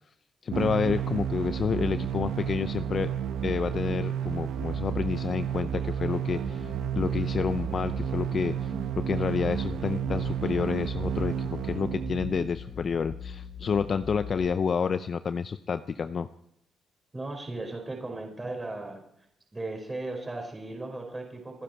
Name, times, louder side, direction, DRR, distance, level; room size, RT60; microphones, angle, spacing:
voice 1, 0.4-3.1 3.4-16.3, left 6 dB, 45° left, 11 dB, 0.6 m, -29 dB
sound 1, 0.5-12.5, right 9 dB, 80° right, 1.2 m, -31 dB
sound 2, 6.4-14.5, left 5 dB, 25° left, 5.1 m, -42 dB
voice 2, 17.1-19.0 19.5-21.6, right 2 dB, 20° right, 2 dB, 4.7 m, -36 dB
27.5 x 10.5 x 4.4 m, 0.76 s
cardioid pair, 90°, 0 cm